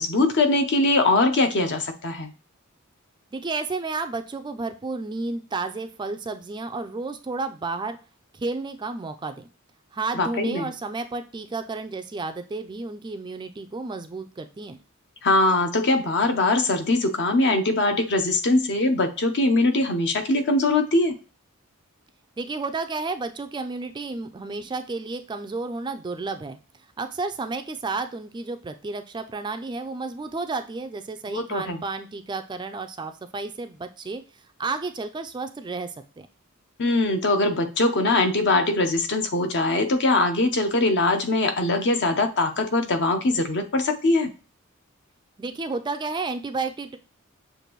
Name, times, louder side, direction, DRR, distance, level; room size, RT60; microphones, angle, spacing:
voice 1, 0.0-2.3 10.1-10.7 15.2-21.1 31.3-31.8 36.8-44.3, left 2 dB, 55° left, 6 dB, 0.8 m, -22 dB
voice 2, 3.3-8.0 8.3-9.5 9.9-14.8 22.4-26.6 27.0-34.2 34.6-36.3 45.4-47.0, right 3 dB, 20° right, 7 dB, 0.4 m, -32 dB
6.6 x 2.6 x 3.0 m, 0.35 s
head